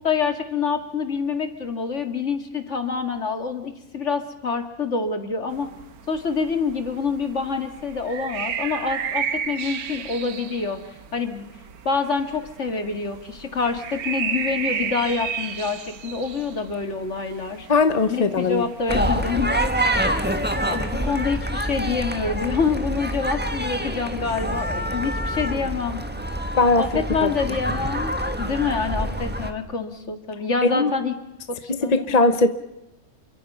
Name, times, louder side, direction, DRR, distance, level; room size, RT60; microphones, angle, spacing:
voice 1, 0.0-5.7 6.1-10.8 11.1-11.5 11.9-17.7 18.1-19.5 20.7-26.0 26.8-31.1 31.6-32.2, left 5 dB, 55° left, 6 dB, 2.3 m, -26 dB
sound 1, 5.5-19.2, right 7 dB, 80° right, 1.6 m, -33 dB
voice 2, 17.7-18.6 26.6-27.3 30.6-30.9 31.7-32.5, left 3 dB, 30° left, 10 dB, 0.9 m, -19 dB
sound 2, 18.9-29.5, right 1 dB, 5° right, 1.4 m, -26 dB
29.0 x 23.5 x 5.5 m, 0.95 s
omnidirectional pair, 1.5 m